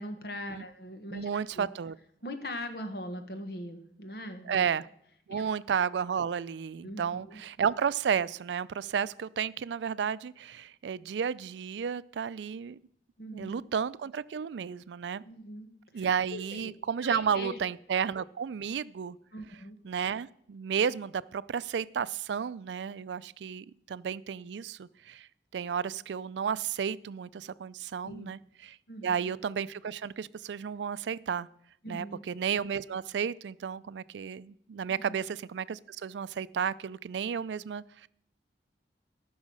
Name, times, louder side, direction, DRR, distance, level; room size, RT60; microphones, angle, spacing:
voice 1, 0.0-1.3 1.5-1.7 2.2-4.6 5.3-5.5 6.8-7.4 13.2-13.7 15.2-15.7 15.9-16.7 17.0-17.6 19.3-19.8 28.0-28.3 28.9-29.3 31.8-32.2 34.9-35.2, left 1 dB, 60° left, 7 dB, 1.3 m, -41 dB
voice 2, 1.1-2.0 4.5-4.9 5.3-12.8 13.3-15.2 15.9-19.2 19.8-25.3 25.5-28.8 29.0-31.5 31.9-38.1, right 7 dB, 90° right, 18 dB, 0.4 m, -32 dB
13.5 x 6.3 x 6.3 m, 0.68 s
head